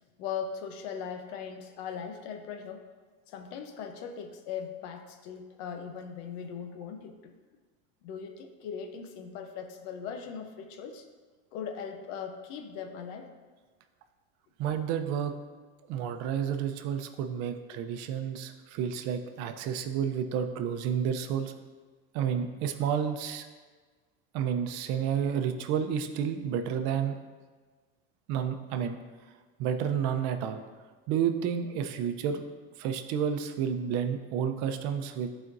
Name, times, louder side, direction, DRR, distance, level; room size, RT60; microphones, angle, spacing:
voice 1, 0.2-2.8 3.3-7.3 8.0-11.1 11.5-13.3 17.7-17.8, left 7 dB, 70° left, 6 dB, 0.8 m, -39 dB
voice 2, 14.6-15.3 15.9-21.5 22.1-23.5 24.3-27.2 28.3-29.0 29.6-30.6 31.1-32.4 32.8-35.3, right 8 dB, 60° right, 7 dB, 0.7 m, -30 dB
12.0 x 4.3 x 2.6 m, 1.4 s
cardioid pair, 150°, 30 cm